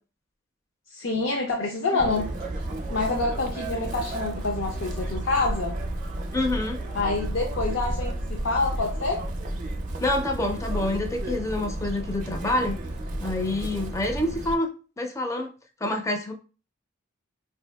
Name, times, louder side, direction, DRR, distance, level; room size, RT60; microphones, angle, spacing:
voice 1, 0.9-2.3 2.9-5.8 6.9-9.2, left 3 dB, 70° left, 0.6 m, -27 dB
Chirp tweet, 2.0-14.5, right 1 dB, 40° right, 0.5 m, -32 dB
voice 2, 6.3-6.8 10.0-12.8 13.2-15.5 15.8-16.3, left 1 dB, 15° left, 0.4 m, -27 dB
4.6 x 2.7 x 2.2 m
head